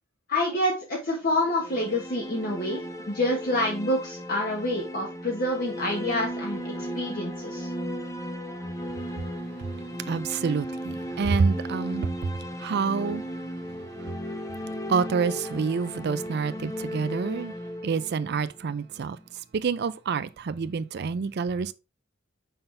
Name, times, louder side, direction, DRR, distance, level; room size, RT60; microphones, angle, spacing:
voice 1, 0.3-6.6 6.9-7.7, left 1 dB, 50° left, 1.4 m, -27 dB
sound 1, 1.3-19.3, equal, 15° left, 0.7 m, -36 dB
voice 2, 10.1-12.3 12.6-13.2 14.9-17.5 17.8-19.2 19.5-21.7, right 5 dB, 55° right, 0.4 m, -27 dB
5.6 x 5.6 x 3.3 m
head